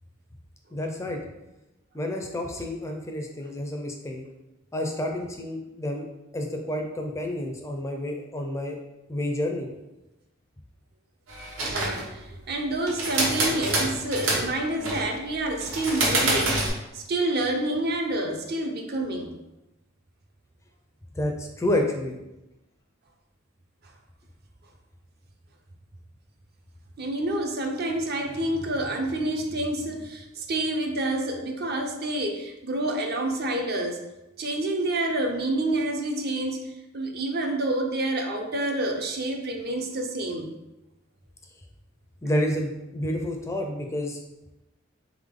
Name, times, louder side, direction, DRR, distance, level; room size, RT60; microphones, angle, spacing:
voice 1, 0.7-1.2 1.9-4.2 4.7-6.0 6.3-8.8 9.1-9.7 21.2-22.2 42.2-44.2, left 1 dB, 15° left, 2 dB, 0.4 m, -29 dB
Olympia Carrera De Luxe Electronic Typewriter, 11.3-12.1 12.9-14.5 14.8-15.1 15.6-16.7, right 2 dB, 85° right, 1.2 m, -26 dB
voice 2, 11.6-19.3 27.0-34.0 34.4-36.6 36.9-40.5, right 1 dB, 50° right, 3 dB, 0.5 m, -28 dB
3.6 x 3.6 x 3.6 m, 0.97 s
head